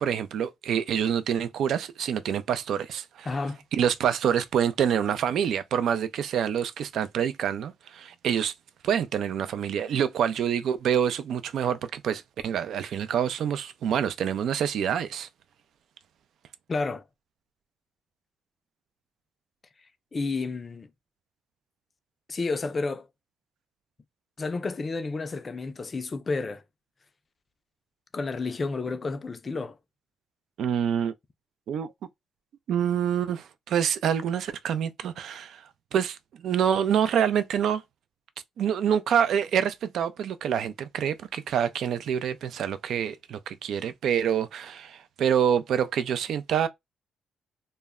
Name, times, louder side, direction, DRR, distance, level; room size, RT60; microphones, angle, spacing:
voice 1, 0.0-3.3 3.7-8.5 8.8-15.3 30.6-31.1 31.7-31.9 32.7-37.8 38.6-46.7, right 8 dB, 70° right, 0.3 m, -26 dB
voice 2, 3.3-3.6 16.7-17.0 20.1-20.9 22.3-23.1 24.4-26.6 28.1-29.8, left 3 dB, 35° left, 0.4 m, -31 dB
2.1 x 2.0 x 3.5 m
cardioid pair, 90°, 0 cm